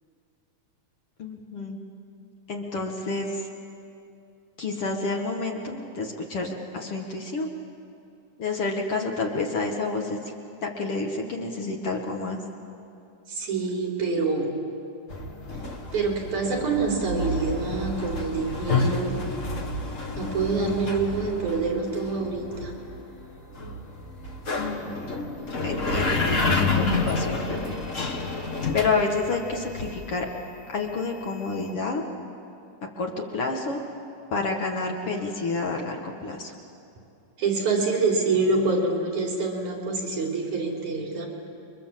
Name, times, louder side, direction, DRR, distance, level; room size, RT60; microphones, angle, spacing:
voice 1, 1.2-1.8 2.5-3.5 4.6-7.5 8.4-10.2 10.6-12.4 24.5-25.0 25.6-27.8 28.7-30.3 30.7-32.0 33.0-33.8 34.3-36.5, left 3 dB, 50° left, 1 dB, 2.4 m, -29 dB
voice 2, 13.3-14.5 15.9-19.2 20.2-22.7 37.4-41.3, right 3 dB, 65° right, -1 dB, 5.3 m, -26 dB
sound 1, 15.1-30.6, left 3 dB, 35° left, 1.3 m, -29 dB
29.5 x 23.5 x 7.6 m, 2.6 s
omnidirectional pair, 3.6 m